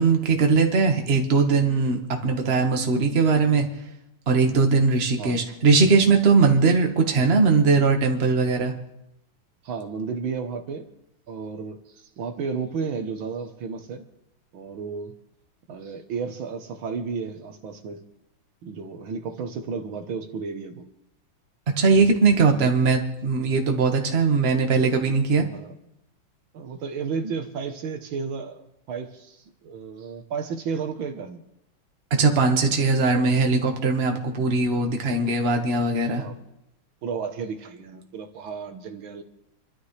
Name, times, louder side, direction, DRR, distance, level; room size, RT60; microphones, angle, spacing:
voice 1, 0.0-3.7 4.3-8.7 21.8-25.4 32.2-36.2, right 4 dB, 30° right, 3 dB, 1.6 m, -20 dB
voice 2, 9.6-10.9 11.3-14.1 14.5-15.1 15.7-18.0 18.6-20.9 22.5-22.7 25.4-25.7 26.5-31.4 32.6-32.8 36.2-36.4 37.0-39.2, right 5 dB, 75° right, 6 dB, 1.8 m, -33 dB
28.5 x 12.5 x 3.3 m, 0.86 s
omnidirectional pair, 2.3 m